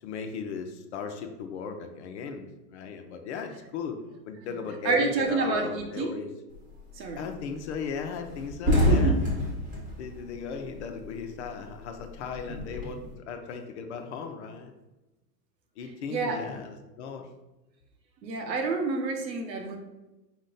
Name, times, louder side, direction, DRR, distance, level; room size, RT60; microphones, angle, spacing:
voice 1, 0.0-4.0 4.2-6.3 7.1-9.2 10.0-14.7 15.8-17.3, left 6 dB, 45° left, 5 dB, 0.4 m, -37 dB
voice 2, 4.8-6.2 7.0-7.2 8.7-9.2 16.1-16.4 18.2-19.8, right 3 dB, 80° right, 4 dB, 1.0 m, -28 dB
sound 1, 6.5-6.9 7.3-7.4 7.7-7.8 8.1-11.1 11.4-13.1, left 1 dB, 15° right, 1.0 m, -27 dB
5.2 x 2.1 x 3.8 m, 1.0 s
hypercardioid pair, 140°, 49 cm